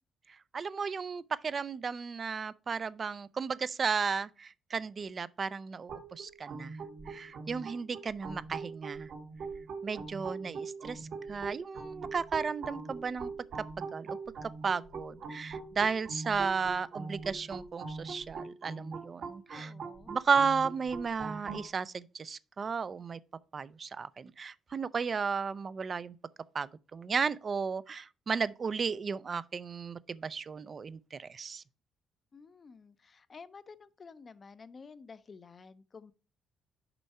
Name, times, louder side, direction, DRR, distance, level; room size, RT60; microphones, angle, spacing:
voice 1, 0.5-6.8 7.1-9.1 9.8-13.3 13.8-19.7 20.1-23.2 23.5-26.2 26.5-31.6, right 5 dB, 40° right, 0.4 m, -34 dB
sound 1, 5.9-21.7, right 4 dB, 60° right, 1.3 m, -42 dB
voice 2, 19.5-20.2 32.3-36.1, left 5 dB, 40° left, 0.6 m, -52 dB
6.9 x 5.4 x 4.2 m
cardioid pair, 90°, 0 cm